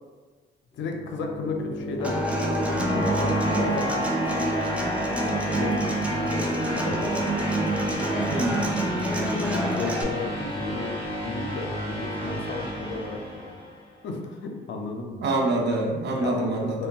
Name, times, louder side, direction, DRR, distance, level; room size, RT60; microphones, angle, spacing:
voice 1, 0.7-4.1 5.4-7.1 7.9-8.4 9.3-10.9 11.2-13.6 14.0-15.2 16.2-16.9, left 3 dB, 70° left, 2 dB, 0.5 m, -34 dB
sound 1, 0.9-13.9, left 1 dB, 25° left, 0.6 m, -30 dB
Human voice / Acoustic guitar, 2.0-10.0, right 2 dB, 5° right, 0.4 m, -28 dB
voice 2, 8.3-8.8 15.2-16.8, right 2 dB, 60° right, 0 dB, 0.6 m, -26 dB
3.3 x 2.1 x 2.3 m, 1.4 s
cardioid pair, 90°, 20 cm